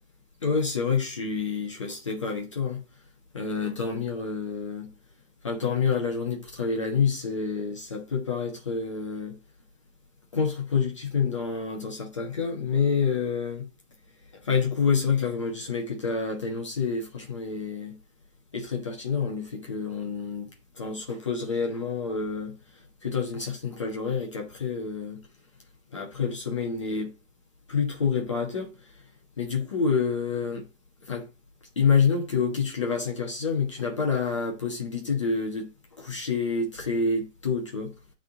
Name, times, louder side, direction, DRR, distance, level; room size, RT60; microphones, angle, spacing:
voice 1, 0.4-2.8 3.3-4.9 5.4-9.4 10.3-13.7 14.4-18.0 18.5-20.5 20.7-25.2 25.9-27.1 27.7-29.0 29.4-30.7 31.0-31.3 31.8-35.7 36.0-37.9, left 5 dB, 25° left, 1.2 m, -28 dB
9.5 x 3.8 x 3.9 m
figure-of-eight pair, 155°, 39 cm